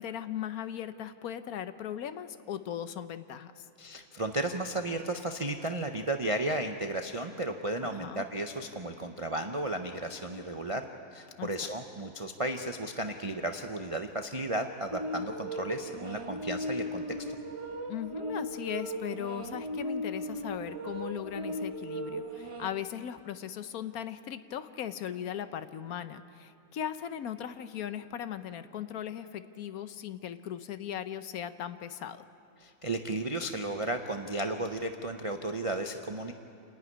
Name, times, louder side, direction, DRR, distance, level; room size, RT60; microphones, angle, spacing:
voice 1, 0.0-3.7 7.8-8.2 11.4-11.7 17.9-32.2, left 9 dB, 70° left, 11 dB, 1.1 m, -38 dB
voice 2, 3.8-10.8 11.1-17.2 32.6-36.3, right 1 dB, 40° right, 5 dB, 0.4 m, -34 dB
sound 1, 14.9-22.7, equal, 20° right, 1.2 m, -37 dB
28.0 x 10.5 x 9.6 m, 2.8 s
omnidirectional pair, 1.7 m